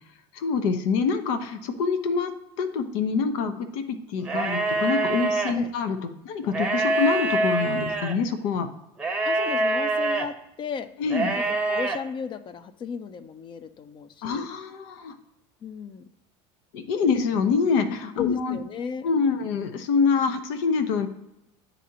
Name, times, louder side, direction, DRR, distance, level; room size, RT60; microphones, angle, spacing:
voice 1, 0.3-2.3 2.6-8.7 11.0-11.4 14.2-15.1 16.7-18.6 19.0-21.1, left 5 dB, 75° left, 10 dB, 0.8 m, -25 dB
sound 1, 4.2-5.5 6.5-8.1 9.0-10.3 11.1-12.0, right 2 dB, 5° right, 0.9 m, -25 dB
voice 2, 9.2-10.9 11.4-14.5 15.6-16.1 18.2-19.1, left 6 dB, 30° left, 13 dB, 0.5 m, -35 dB
9.8 x 4.1 x 2.8 m, 0.88 s
supercardioid pair, 115°, 15 cm